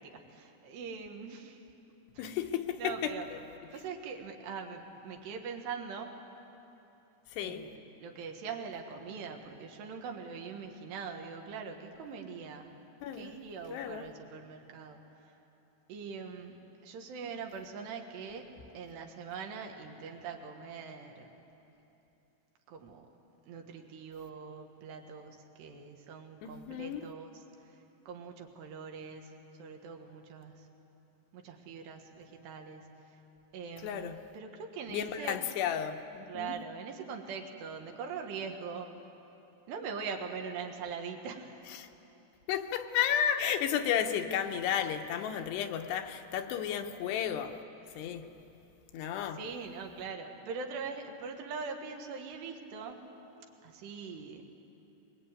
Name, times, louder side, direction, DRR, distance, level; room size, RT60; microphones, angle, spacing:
voice 1, 0.0-1.6 2.2-2.3 2.8-3.3 3.7-6.2 7.4-7.7 8.0-12.8 13.1-15.3 15.9-16.6 16.8-18.5 18.7-21.3 22.7-23.0 23.5-27.8 28.1-30.7 31.3-33.2 33.5-35.4 36.3-38.9 39.7-41.6 49.4-53.0 53.6-54.4, right 5 dB, 85° right, 3 dB, 3.8 m, -42 dB
voice 2, 2.2-3.2 7.3-7.7 13.0-13.3 13.7-14.1 26.4-27.0 33.8-34.2 34.9-36.6 41.7-41.9 42.5-47.6 48.0-48.3 48.9-49.4, left 9 dB, 80° left, 6 dB, 3.1 m, -33 dB
23.0 x 22.0 x 9.2 m, 3.0 s
omnidirectional pair, 4.8 m